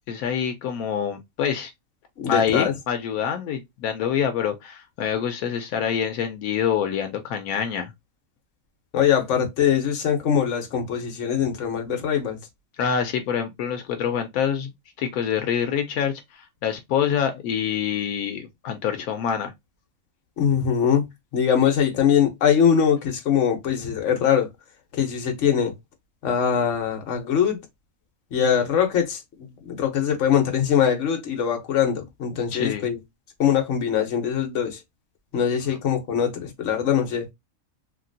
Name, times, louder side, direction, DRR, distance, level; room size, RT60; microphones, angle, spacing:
voice 1, 0.1-1.7 2.3-7.9 12.8-14.7 15.0-19.5 32.5-32.9, left 8 dB, 85° left, 1.0 m, -26 dB
voice 2, 2.2-2.7 8.9-12.4 20.4-21.1 21.3-24.5 24.9-25.7 26.2-27.6 28.3-33.0 33.4-34.8 35.3-37.3, left 8 dB, 60° left, 1.1 m, -22 dB
3.0 x 2.9 x 2.6 m
omnidirectional pair, 1.5 m